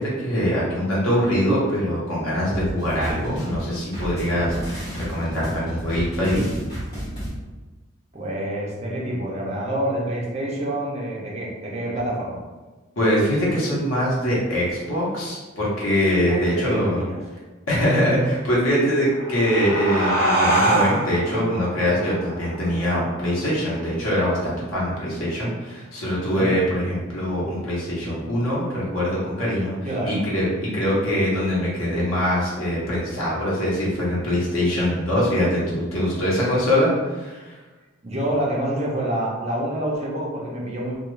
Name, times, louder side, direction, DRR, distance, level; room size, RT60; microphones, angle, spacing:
voice 1, 0.0-6.5 13.0-17.0 17.7-37.5, equal, 85° left, -6 dB, 1.0 m, -23 dB
sound 1, 2.4-7.3, equal, 20° left, 1.2 m, -32 dB
voice 2, 8.1-12.4 16.3-17.2 26.3-26.5 29.8-30.2 38.0-41.0, right 1 dB, 30° right, -4 dB, 0.6 m, -27 dB
sound 2, 18.9-24.1, right 2 dB, 50° left, 1.4 m, -25 dB
2.4 x 2.3 x 3.1 m, 1.3 s
head